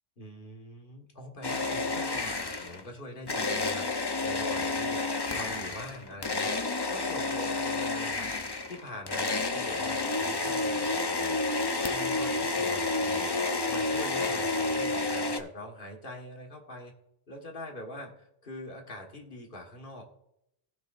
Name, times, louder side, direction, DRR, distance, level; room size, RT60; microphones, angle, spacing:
voice 1, 0.2-3.9 4.2-6.5 6.9-8.3 8.7-13.4 13.7-16.9 17.3-20.0, left 1 dB, 50° left, 1 dB, 1.8 m, -44 dB
sound 1, 1.4-2.9 3.3-15.4, left 3 dB, 25° left, 0.6 m, -30 dB
18.0 x 6.3 x 2.6 m, 0.79 s
omnidirectional pair, 1.2 m